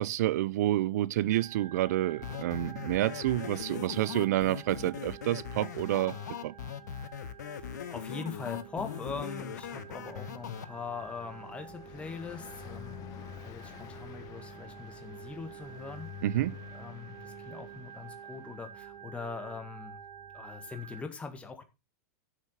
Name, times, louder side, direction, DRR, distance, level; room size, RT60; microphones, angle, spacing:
voice 1, 0.0-6.2 6.4-6.5 16.2-16.6, right 14 dB, 70° right, 0.6 m, -29 dB
Organ, 1.3-21.0, right 9 dB, 50° right, 2.5 m, -49 dB
sound 1, 2.2-10.7, left 9 dB, 85° left, 1.1 m, -40 dB
voice 2, 7.5-16.1 16.7-20.0 20.3-21.6, left 5 dB, 15° left, 1.8 m, -42 dB
Car passing by, 8.3-18.8, left 13 dB, 40° left, 0.9 m, -50 dB
11.5 x 6.5 x 5.8 m
hypercardioid pair, 125°, 9 cm